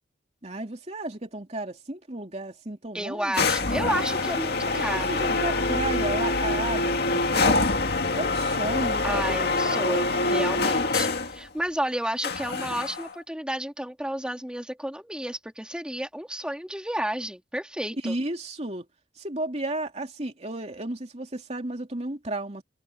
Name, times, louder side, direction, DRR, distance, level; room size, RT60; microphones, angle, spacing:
voice 1, 0.4-3.5 4.6-7.7 8.1-10.0 18.0-18.9 19.2-22.6, right 2 dB, 35° right, 3.1 m, -33 dB
voice 2, 2.9-5.2 9.0-18.1, right 1 dB, 5° right, 3.2 m, -32 dB
sound 1, 3.3-11.4 12.2-13.1, left 3 dB, 55° left, 2.2 m, -25 dB
head